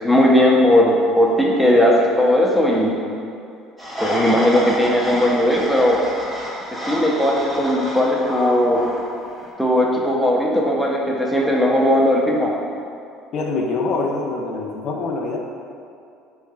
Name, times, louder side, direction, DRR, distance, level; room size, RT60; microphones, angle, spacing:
voice 1, 0.0-3.0 4.0-6.0 6.7-8.8 9.6-12.5, left 1 dB, ahead, -3 dB, 0.6 m, -17 dB
sound 1, 3.8-9.5, equal, 25° right, 1.3 m, -29 dB
voice 2, 13.3-15.4, left 3 dB, 55° left, 0 dB, 0.4 m, -24 dB
5.4 x 3.1 x 2.2 m, 2.4 s
supercardioid pair, 95°, 0 cm